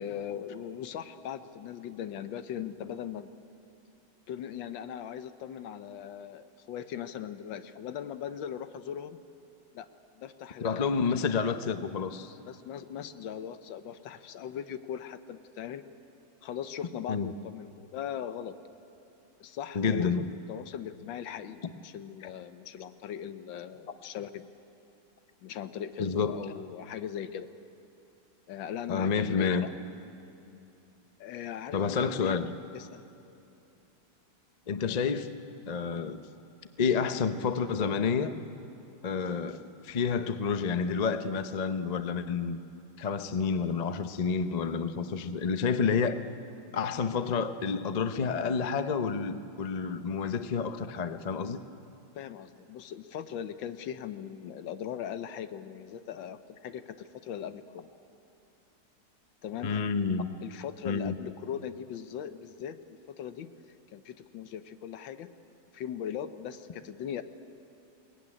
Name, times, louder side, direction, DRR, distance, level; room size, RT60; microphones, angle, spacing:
voice 1, 0.0-3.3 4.3-9.2 9.7-9.9 10.2-11.0 12.5-15.8 16.4-18.6 19.4-20.1 20.5-24.5 25.4-27.5 28.5-29.6 31.2-32.4 32.7-33.0 52.1-57.9 59.4-59.8 60.4-63.5 63.9-65.3 65.7-67.2, left 9 dB, 85° left, 11 dB, 1.6 m, -39 dB
voice 2, 10.6-12.3 17.1-17.3 19.7-20.3 26.0-26.3 28.9-29.7 31.7-32.5 34.7-35.3 35.7-36.2 36.8-38.3 39.0-42.6 43.0-46.2 46.7-51.6 59.6-60.3 60.8-61.1, left 5 dB, 60° left, 10 dB, 0.4 m, -29 dB
22.0 x 19.0 x 9.9 m, 2.8 s
omnidirectional pair, 2.0 m